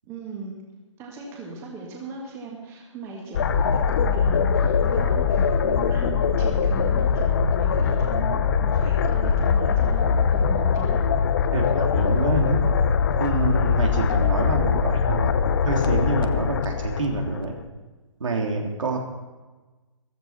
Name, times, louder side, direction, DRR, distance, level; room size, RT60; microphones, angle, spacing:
voice 1, 0.1-0.5 1.0-11.0, right 4 dB, 15° right, -1 dB, 2.1 m, -38 dB
sound 1, 3.3-17.6, left 6 dB, 45° left, 0.9 m, -22 dB
voice 2, 11.5-12.6 13.2-15.3 15.6-17.5 18.2-19.0, right 3 dB, 75° right, 1 dB, 3.2 m, -26 dB
15.0 x 14.0 x 4.4 m, 1.2 s
hypercardioid pair, 155°, 17 cm